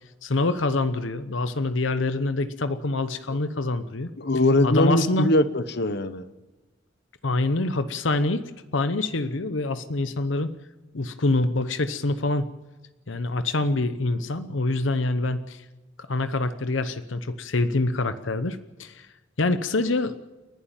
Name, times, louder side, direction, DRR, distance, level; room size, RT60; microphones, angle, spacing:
voice 1, 0.2-4.1 4.6-5.3 7.2-8.4 8.7-10.5 10.9-12.5 13.1-15.6 16.1-19.1 19.4-20.1, left 2 dB, 85° left, 12 dB, 0.9 m, -25 dB
voice 2, 4.2-6.3, left 1 dB, 60° left, 13 dB, 1.1 m, -21 dB
29.5 x 11.5 x 9.0 m, 1.2 s
head